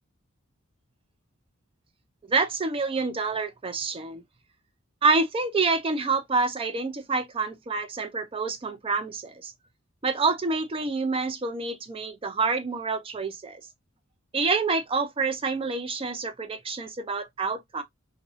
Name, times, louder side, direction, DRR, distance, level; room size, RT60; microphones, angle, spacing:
voice 1, 2.3-4.2 5.0-9.5 10.0-13.6 14.3-17.8, right 4 dB, 25° right, 0.4 m, -27 dB
2.6 x 2.0 x 2.4 m
head